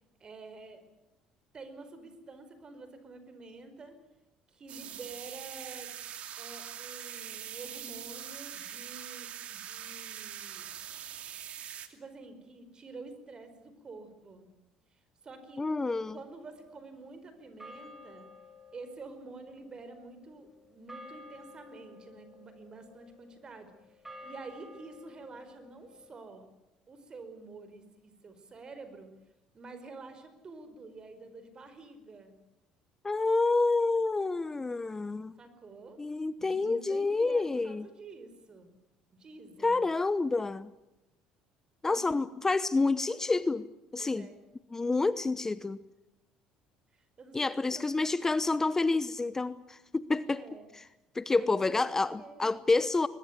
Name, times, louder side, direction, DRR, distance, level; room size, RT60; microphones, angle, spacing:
voice 1, 0.2-0.8 1.5-4.0 4.5-5.9 6.4-10.7 11.9-14.5 14.9-15.6 16.1-18.3 18.7-26.4 26.9-29.1 29.5-32.3 35.4-36.0 36.4-38.8 39.1-39.9 41.9-42.3 44.0-44.4 46.9-47.9 50.3-50.7 51.3-52.7, right 3 dB, 35° right, 4.9 m, -48 dB
sound 1, 4.7-11.9, right 10 dB, 60° right, 2.6 m, -43 dB
voice 2, 15.6-16.2 33.0-35.3 36.0-37.9 39.6-40.7 41.8-43.6 43.9-44.3 44.7-45.8 47.3-50.4 51.1-53.1, left 3 dB, 20° left, 0.9 m, -28 dB
sound 2, 15.8-17.1 17.6-26.2, left 2 dB, 10° right, 6.4 m, -53 dB
21.5 x 21.0 x 9.5 m
supercardioid pair, 80°, 2 cm